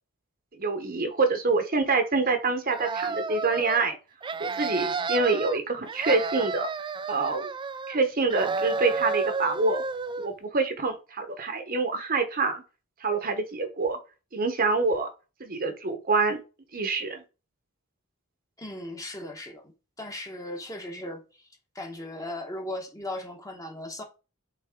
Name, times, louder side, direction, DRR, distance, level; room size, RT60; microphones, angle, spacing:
voice 1, 0.6-4.0 4.4-6.7 7.1-7.5 7.9-9.8 10.2-12.6 13.0-14.0 14.3-15.1 15.4-16.4 16.7-17.2, right 3 dB, 45° right, 1.1 m, -26 dB
sound 1, 2.7-3.8 4.2-5.6 5.9-8.0 8.3-10.3, right 4 dB, 20° right, 0.3 m, -31 dB
voice 2, 18.6-19.7 20.0-21.2 21.7-24.0, left 1 dB, 15° left, 1.3 m, -37 dB
8.4 x 4.0 x 3.8 m
head